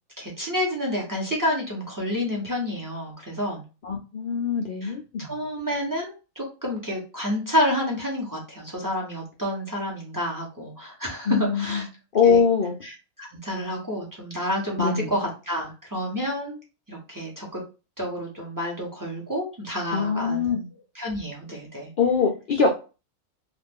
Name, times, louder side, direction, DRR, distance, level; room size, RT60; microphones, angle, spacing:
voice 1, 0.2-3.6 4.8-11.9 12.2-12.4 12.8-16.6 16.9-17.6 18.0-20.6 20.9-21.9, equal, 15° right, -2 dB, 0.7 m, -29 dB
voice 2, 3.8-5.3 11.3-11.8 12.1-12.7 14.8-15.1 19.9-20.7 22.0-22.7, left 6 dB, 90° left, -1 dB, 0.4 m, -23 dB
2.5 x 2.4 x 3.4 m, 0.31 s
omnidirectional pair, 1.5 m